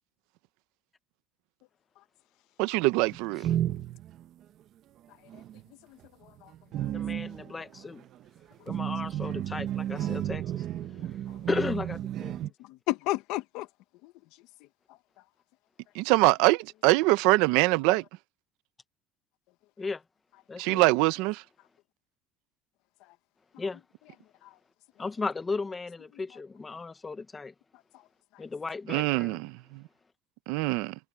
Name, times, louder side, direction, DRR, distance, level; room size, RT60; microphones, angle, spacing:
voice 1, 2.6-3.4 15.9-18.0 20.6-21.4 28.9-29.8 30.5-31.0, right 21 dB, 80° right, 0.7 m, -24 dB
sound 1, 3.1-4.3 5.3-5.6 6.0-12.5, right 12 dB, 45° right, 1.0 m, -33 dB
voice 2, 5.1-5.4 5.8-6.5 6.8-6.9 8.6-8.7 10.8-11.5 12.9-13.7 14.0-14.1 14.6-15.0 23.0-23.1 24.4-24.6 27.9-28.0 28.3-28.4, left 18 dB, 70° left, 1.2 m, -36 dB
voice 3, 6.9-8.0 8.7-10.6 11.5-12.3 19.8-20.0 20.5-20.8 23.6-23.8 25.0-27.5 28.4-29.4, left 4 dB, 15° left, 1.1 m, -35 dB
cardioid pair, 160°, 0 cm